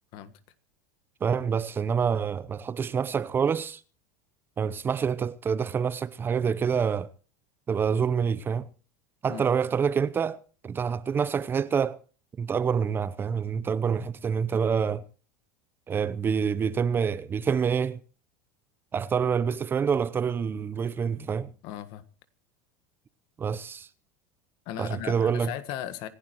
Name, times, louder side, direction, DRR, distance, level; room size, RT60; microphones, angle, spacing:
voice 1, 1.2-3.8 4.6-7.1 7.7-8.7 9.2-10.4 10.6-12.0 12.4-15.0 15.9-18.0 18.9-21.5 23.4-23.9 24.8-25.5, right 6 dB, 25° right, 0.8 m, -27 dB
voice 2, 21.6-22.0 24.6-26.1, left 11 dB, 60° left, 1.5 m, -37 dB
26.5 x 11.5 x 3.1 m
supercardioid pair, 105°, 8 cm